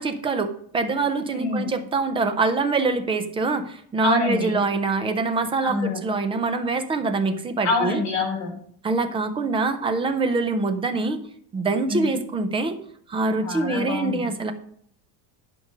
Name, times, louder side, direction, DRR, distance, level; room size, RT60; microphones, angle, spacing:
voice 1, 0.0-8.0 8.8-11.2 11.5-12.8 13.1-14.5, right 3 dB, 15° right, 8 dB, 0.3 m, -24 dB
voice 2, 1.3-1.6 4.0-4.6 5.6-6.0 7.6-8.6 11.9-12.2 13.4-14.3, left 3 dB, 35° left, 0 dB, 3.7 m, -26 dB
11.0 x 5.2 x 6.3 m, 0.62 s
cardioid pair, 170°, 46 cm